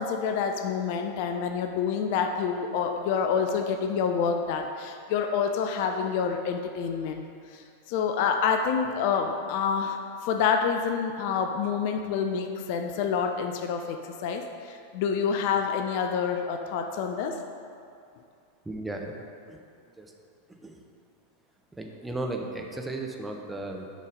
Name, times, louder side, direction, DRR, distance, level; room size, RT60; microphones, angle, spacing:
voice 1, 0.0-7.2 7.5-10.0 10.2-17.4, left 6 dB, 50° left, 5 dB, 0.5 m, -27 dB
voice 2, 18.6-19.6 20.0-20.1 20.6-20.8 21.7-23.9, right 2 dB, 10° right, 1 dB, 0.8 m, -35 dB
8.1 x 4.4 x 5.2 m, 2.4 s
figure-of-eight pair, 90°, 0 cm